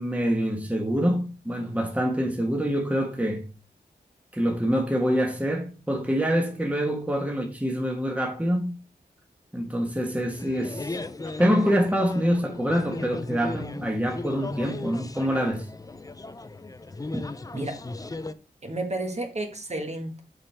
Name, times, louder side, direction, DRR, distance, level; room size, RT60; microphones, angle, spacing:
voice 1, 0.0-3.5 4.3-8.8 9.5-11.0 11.4-15.6 17.1-17.2, equal, 10° right, 1.3 m, -25 dB
sound 1, 10.3-18.3, left 2 dB, 20° left, 0.5 m, -36 dB
voice 2, 17.5-17.8 18.6-20.2, right 2 dB, 40° right, 1.6 m, -31 dB
7.0 x 5.1 x 3.4 m
wide cardioid pair, 85°, 17 cm